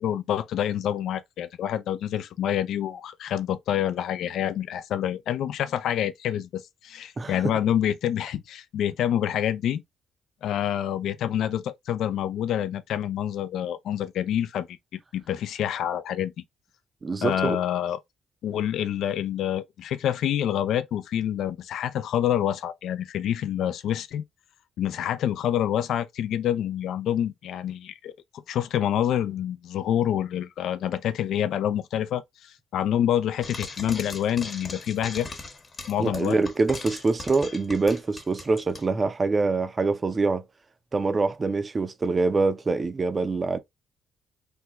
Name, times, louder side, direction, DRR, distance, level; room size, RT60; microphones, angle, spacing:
voice 1, 0.0-9.8 10.4-14.7 15.1-16.3 17.2-18.0 18.4-24.2 24.8-28.1 28.5-35.3 35.9-36.4, left 10 dB, 75° left, 0.4 m, -27 dB
voice 2, 17.0-17.6 36.0-40.4 40.9-43.6, right 3 dB, 30° right, 0.5 m, -25 dB
Frying (food), 33.4-38.9, left 3 dB, 35° left, 0.9 m, -39 dB
3.4 x 2.1 x 2.8 m
cardioid pair, 90°, 0 cm